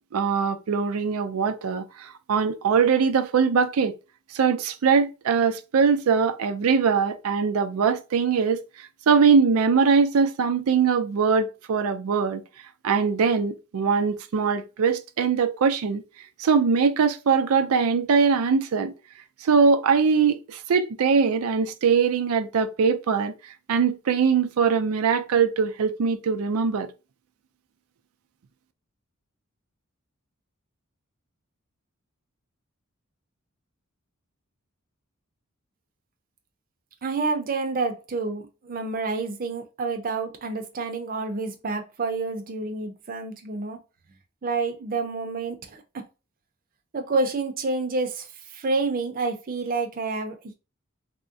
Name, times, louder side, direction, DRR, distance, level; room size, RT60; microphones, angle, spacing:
voice 1, 0.1-3.9 4.3-12.4 12.8-16.0 16.4-18.9 19.4-23.3 23.7-26.9, right 5 dB, 90° right, 0.4 m, -22 dB
voice 2, 37.0-43.8 44.4-45.8 46.9-48.3 48.5-50.5, right 3 dB, 40° right, 0.6 m, -28 dB
3.5 x 2.0 x 2.6 m
head